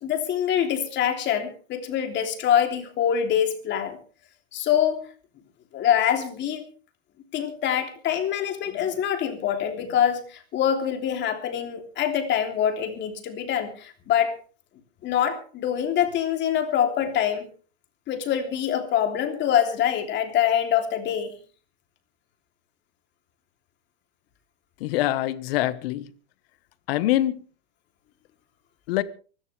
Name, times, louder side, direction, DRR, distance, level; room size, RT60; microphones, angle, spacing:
voice 1, 0.0-4.0 4.5-5.0 5.7-6.6 7.3-14.3 15.0-17.5 18.1-21.3, left 9 dB, 35° left, 3.2 m, -25 dB
voice 2, 24.8-26.1 26.9-27.3 28.9-29.0, left 15 dB, 65° left, 1.4 m, -24 dB
24.5 x 13.5 x 3.4 m
supercardioid pair, 145°, 31 cm